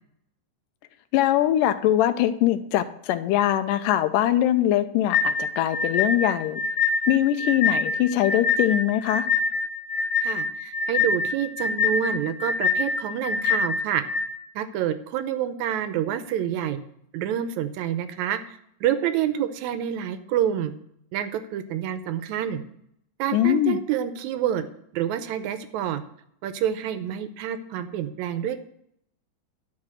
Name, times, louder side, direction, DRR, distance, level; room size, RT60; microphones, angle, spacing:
voice 1, 1.1-6.6 7.1-9.3 23.3-23.8, left 12 dB, 90° left, 11 dB, 2.2 m, -22 dB
sound 1, 5.1-14.3, left 4 dB, 55° left, 2.1 m, -25 dB
voice 2, 10.2-14.0 14.6-16.8 17.1-20.7 21.1-22.6 23.2-24.7 24.9-26.0 26.4-28.6, right 10 dB, 75° right, 11 dB, 1.8 m, -28 dB
11.5 x 3.8 x 7.5 m, 0.72 s
omnidirectional pair, 3.8 m